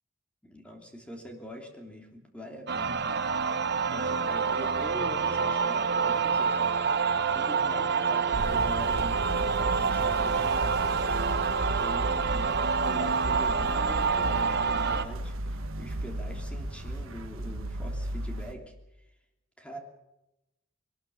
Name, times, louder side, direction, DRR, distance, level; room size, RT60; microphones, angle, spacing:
voice 1, 0.4-3.3 3.9-6.6 7.3-10.7 11.6-18.7 19.6-19.8, equal, 5° left, 2 dB, 3.1 m, -43 dB
sound 1, 2.7-15.0, right 5 dB, 55° right, 1.2 m, -27 dB
sound 2, 8.3-18.5, right 1 dB, 75° right, 1.4 m, -35 dB
21.5 x 19.5 x 7.1 m, 0.93 s
head